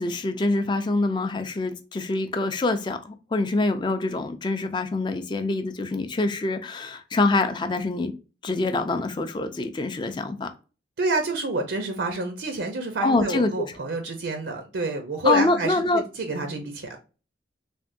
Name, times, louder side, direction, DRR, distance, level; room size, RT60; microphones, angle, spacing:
voice 1, 0.0-8.1 8.4-10.5 13.0-13.6 15.2-16.0, left 3 dB, 25° left, 0.3 m, -25 dB
voice 2, 11.0-17.0, right 2 dB, 80° right, 0.6 m, -28 dB
3.4 x 2.2 x 2.5 m
head